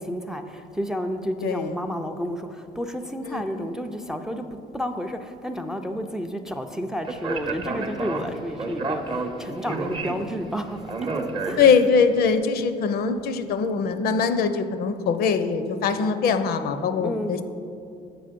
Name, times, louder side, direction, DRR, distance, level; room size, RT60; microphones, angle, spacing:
voice 1, 0.0-4.5 4.7-10.8 11.4-11.6 17.0-17.3, equal, 5° right, 6 dB, 0.3 m, -31 dB
voice 2, 1.4-1.8 3.3-3.4 11.6-17.4, left 5 dB, 65° left, 9 dB, 0.5 m, -22 dB
Speech, 7.0-12.1, right 3 dB, 30° right, 0.7 m, -30 dB
7.6 x 4.9 x 5.1 m, 2.5 s
cardioid pair, 110°, 17 cm